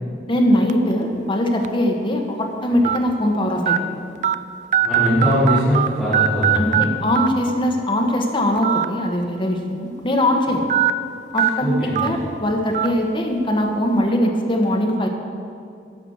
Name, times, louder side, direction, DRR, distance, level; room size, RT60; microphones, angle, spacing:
voice 1, 0.3-3.8 6.5-10.7 11.3-15.1, left 1 dB, 30° left, 2 dB, 1.1 m, -21 dB
sound 1, 0.7-0.9 1.6-1.7 2.8-3.0 3.7-3.8 4.2-4.3 4.7-5.9 6.1-6.8 7.2-7.3 8.6-8.8 9.2-9.3 10.7-10.9 11.4-11.5 12.0-12.1 12.7-12.9, right 11 dB, 45° right, 0.3 m, -19 dB
voice 2, 4.8-6.9 11.3-11.9, equal, 5° right, -13 dB, 2.7 m, -21 dB
11.0 x 6.0 x 7.1 m, 2.4 s
head